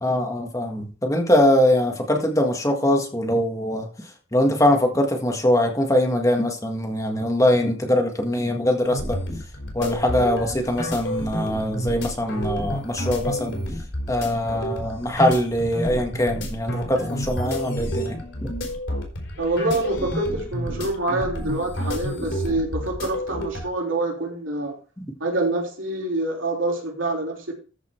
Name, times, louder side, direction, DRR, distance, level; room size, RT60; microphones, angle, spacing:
voice 1, 0.0-3.9 4.3-9.2 9.7-13.6 14.1-18.5, left 1 dB, 15° left, 3 dB, 1.7 m, -22 dB
sound 1, 8.8-23.7, equal, 70° left, 4.2 m, -30 dB
voice 2, 19.4-24.8 25.2-27.5, right 2 dB, 80° right, 0 dB, 3.3 m, -26 dB
14.0 x 5.5 x 4.5 m, 0.35 s
head